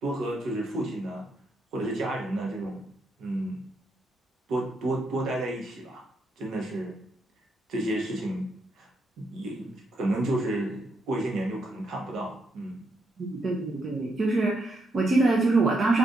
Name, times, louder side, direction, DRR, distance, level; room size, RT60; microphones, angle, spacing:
voice 1, 0.0-1.3 1.7-2.8 3.2-3.6 4.5-6.0 6.4-6.9 7.7-8.5 8.7-8.9 9.2-12.9, right 1 dB, 75° right, -1 dB, 0.9 m, -31 dB
voice 2, 13.2-16.0, right 3 dB, 45° right, -2 dB, 0.6 m, -24 dB
2.6 x 2.4 x 3.5 m, 0.64 s
cardioid pair, 90°, 0 cm